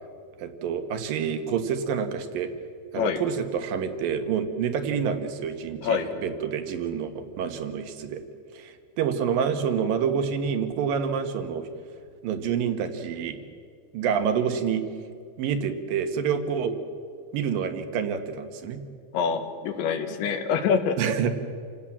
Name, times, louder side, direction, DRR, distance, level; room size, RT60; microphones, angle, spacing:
voice 1, 0.4-2.5 2.9-8.2 8.5-11.7 12.2-13.4 13.9-14.8 15.4-16.7 17.3-18.8 21.0-21.3, right 7 dB, 60° right, 7 dB, 2.6 m, -27 dB
voice 2, 19.1-21.0, left 6 dB, 70° left, 7 dB, 3.8 m, -25 dB
28.5 x 17.5 x 7.4 m, 2.2 s
omnidirectional pair, 5.5 m